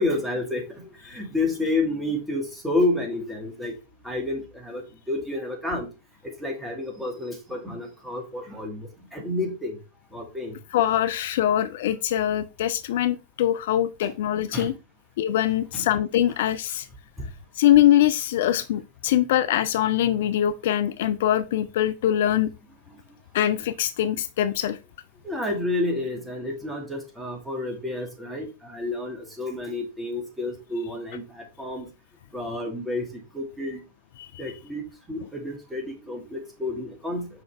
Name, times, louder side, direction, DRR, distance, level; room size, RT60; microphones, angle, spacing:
voice 1, 0.0-3.7 4.0-4.8 5.1-5.9 6.4-9.8 10.1-10.6 14.0-14.1 14.5-14.7 15.7-15.9 25.2-31.9 32.3-33.1 33.3-33.8 34.4-37.3, left 2 dB, 5° right, 1.9 m, -30 dB
voice 2, 10.7-14.7 15.2-16.9 17.6-22.5 23.3-24.8 34.2-34.3, left 11 dB, 55° left, 0.3 m, -23 dB
5.7 x 5.0 x 3.3 m
figure-of-eight pair, 90°, 0 cm